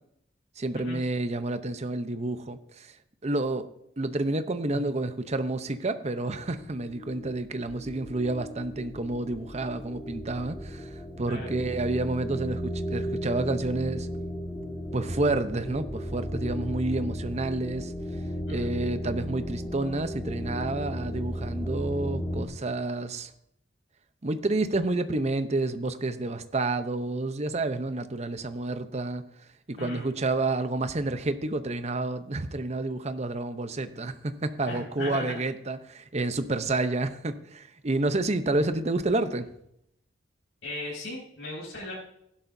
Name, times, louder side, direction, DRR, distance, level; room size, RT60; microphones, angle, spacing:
voice 1, 0.6-2.9 3.2-3.7 4.0-14.1 14.9-17.9 18.5-23.3 24.2-29.2 29.7-39.5, right 2 dB, 35° right, 10 dB, 0.7 m, -29 dB
sound 1, 6.5-22.5, equal, 15° left, 1.3 m, -35 dB
voice 2, 29.8-30.1 34.7-35.4 40.6-41.9, left 1 dB, 85° left, -7 dB, 5.2 m, -37 dB
15.5 x 11.5 x 2.7 m, 0.76 s
head